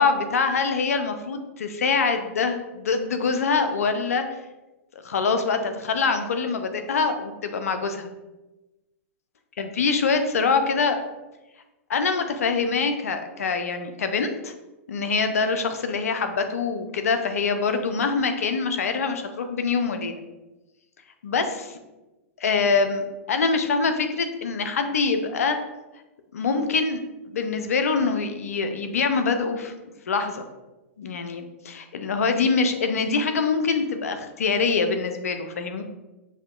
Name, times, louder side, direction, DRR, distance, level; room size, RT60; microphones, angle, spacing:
voice 1, 0.0-4.2 5.0-8.1 9.6-11.0 11.9-14.5 14.9-20.1 21.2-21.8 22.4-25.6 26.3-27.0 27.3-29.7 30.1-30.4 31.0-35.8, left 4 dB, 85° left, 7 dB, 0.5 m, -24 dB
5.6 x 2.8 x 2.4 m, 1.1 s
hypercardioid pair, 115°, 8 cm